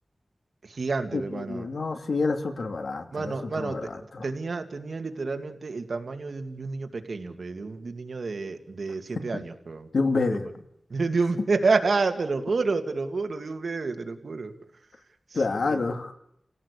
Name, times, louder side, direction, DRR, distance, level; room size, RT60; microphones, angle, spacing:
voice 1, 0.6-1.7 3.1-3.8 4.2-9.9 10.9-14.5 15.3-15.8, right 4 dB, 75° right, 7 dB, 2.2 m, -29 dB
voice 2, 1.1-4.2 9.3-9.4 9.9-10.5 15.3-16.1, left 3 dB, 85° left, 7 dB, 2.5 m, -28 dB
29.5 x 17.0 x 8.4 m, 0.75 s
wide cardioid pair, 90°, 0 cm